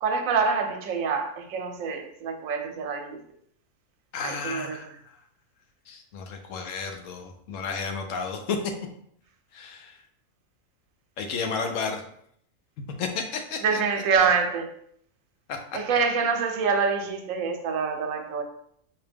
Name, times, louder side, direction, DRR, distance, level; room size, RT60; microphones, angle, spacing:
voice 1, 0.0-3.2 4.2-4.8 13.6-14.8 15.7-18.4, right 5 dB, 85° right, 5 dB, 1.0 m, -26 dB
voice 2, 4.1-4.9 5.9-8.7 9.5-10.0 11.2-12.0 13.0-13.8 15.5-15.8, left 5 dB, 80° left, 4 dB, 1.0 m, -32 dB
4.7 x 2.1 x 3.4 m, 0.68 s
omnidirectional pair, 1.4 m